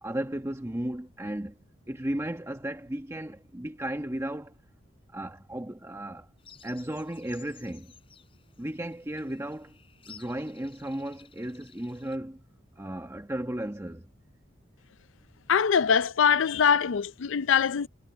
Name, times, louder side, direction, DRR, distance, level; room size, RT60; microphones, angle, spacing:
voice 1, 0.0-1.6 1.9-4.6 5.1-6.3 6.6-7.9 8.6-9.8 10.1-12.4 12.8-14.1, right 1 dB, 15° right, 1.1 m, -35 dB
sound 1, 6.4-12.2, left 7 dB, 30° left, 7.8 m, -55 dB
voice 2, 15.5-17.9, left 7 dB, 85° left, 0.5 m, -23 dB
head